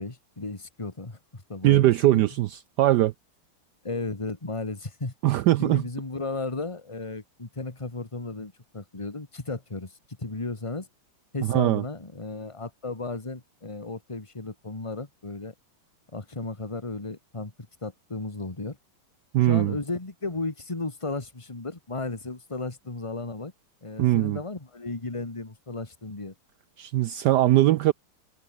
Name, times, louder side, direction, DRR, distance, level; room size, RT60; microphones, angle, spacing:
voice 1, 0.0-2.2 3.8-10.9 11.3-15.5 16.1-17.5 17.8-18.8 19.4-23.5 23.8-26.3, left 3 dB, 15° left, 2.1 m, -34 dB
voice 2, 1.6-3.1 5.2-5.8 11.5-11.8 19.3-19.8 24.0-24.4 26.8-27.9, right 15 dB, 80° right, 0.9 m, -21 dB
omnidirectional pair, 2.3 m